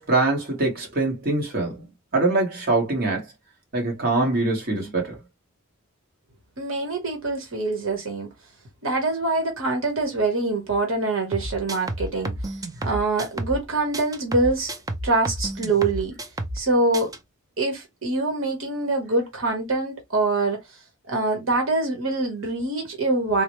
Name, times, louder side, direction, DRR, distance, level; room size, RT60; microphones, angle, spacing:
voice 1, 0.0-1.8 2.1-3.2 3.7-5.2, right 2 dB, 50° right, 1.4 m, -23 dB
voice 2, 6.6-8.3 8.8-12.3 12.8-14.7 15.0-16.1 16.5-17.1 17.6-20.6 21.1-23.4, right 2 dB, 80° right, 1.1 m, -24 dB
sound 1, 11.3-13.7 13.9-16.7 16.9-17.2, right 1 dB, 20° right, 0.5 m, -31 dB
3.8 x 2.1 x 3.1 m
head